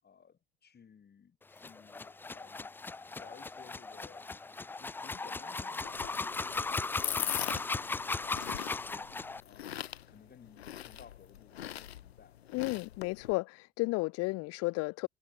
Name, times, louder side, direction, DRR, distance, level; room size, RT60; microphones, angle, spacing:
voice 1, 0.0-2.7 3.2-4.3 4.8-9.1 9.4-9.8 10.1-12.7, left 7 dB, 30° left, 7.2 m, -56 dB
sound 1, 1.5-9.4, left 3 dB, 5° left, 0.3 m, -37 dB
sound 2, 5.8-13.3, left 11 dB, 75° left, 1.9 m, -41 dB
voice 2, 12.5-15.1, left 24 dB, 50° left, 0.8 m, -33 dB
figure-of-eight pair, 60°, 32 cm